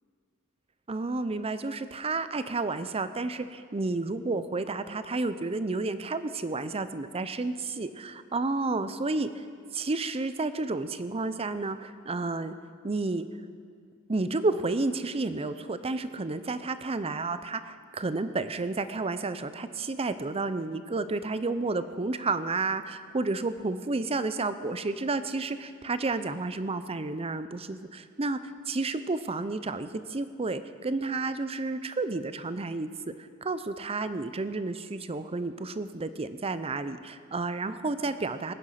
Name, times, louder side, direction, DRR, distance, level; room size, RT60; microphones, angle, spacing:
voice 1, 0.9-9.3 9.7-12.6 12.8-13.3 14.1-32.9 33.2-38.5, right 3 dB, 25° right, 12 dB, 0.6 m, -31 dB
20.0 x 10.0 x 5.8 m, 2.1 s
head